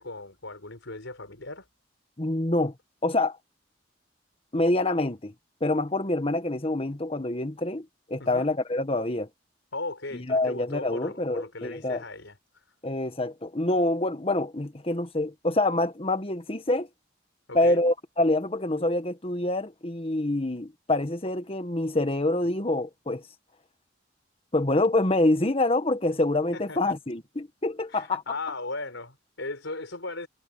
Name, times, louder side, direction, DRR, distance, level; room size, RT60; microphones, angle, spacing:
voice 1, 0.0-1.7 8.2-8.5 9.7-12.6 17.5-17.8 26.5-26.9 27.9-30.3, left 2 dB, 85° left, 4.9 m, -37 dB
voice 2, 2.2-2.7 3.0-3.4 4.5-5.3 5.6-9.3 10.1-12.0 12.8-16.9 17.5-23.2 24.5-28.2, left 2 dB, 30° left, 1.3 m, -26 dB
head